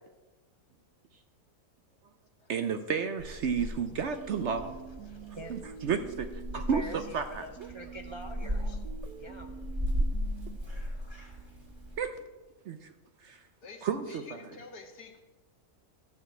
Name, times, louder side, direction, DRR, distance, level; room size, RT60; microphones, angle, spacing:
voice 1, 2.5-4.8 5.5-7.7 12.0-12.2 12.7-12.9 13.2-13.4 13.8-14.4, right 6 dB, 65° right, 9 dB, 0.7 m, -32 dB
Purr / Meow, 3.2-12.0, equal, 15° right, 1.8 m, -37 dB
sound 1, 4.1-7.1 7.6-10.6, right 9 dB, 80° right, 1.3 m, -47 dB
voice 2, 5.0-5.6 6.5-8.8 9.2-9.5, equal, 45° right, 3 dB, 0.3 m, -45 dB
voice 3, 13.6-15.2, left 4 dB, 85° left, 4 dB, 1.9 m, -49 dB
13.0 x 5.0 x 7.6 m, 1.2 s
omnidirectional pair, 1.6 m